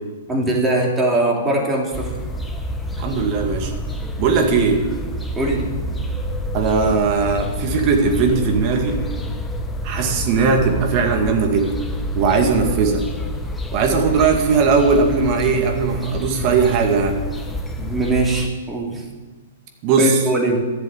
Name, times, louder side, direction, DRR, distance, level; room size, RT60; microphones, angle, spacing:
voice 1, 0.3-2.2 5.3-5.7 17.8-19.0 20.0-20.6, right 1 dB, 15° right, 0 dB, 2.8 m, -21 dB
sound 1, 1.9-18.5, equal, 10° left, 1.1 m, -28 dB
voice 2, 3.0-3.7 4.2-4.9 6.5-9.0 9.8-11.8 12.1-13.0 13.7-17.2 19.8-20.2, right 5 dB, 40° right, 4 dB, 2.1 m, -18 dB
11.5 x 7.5 x 9.1 m, 1.3 s
hypercardioid pair, 120°, 0 cm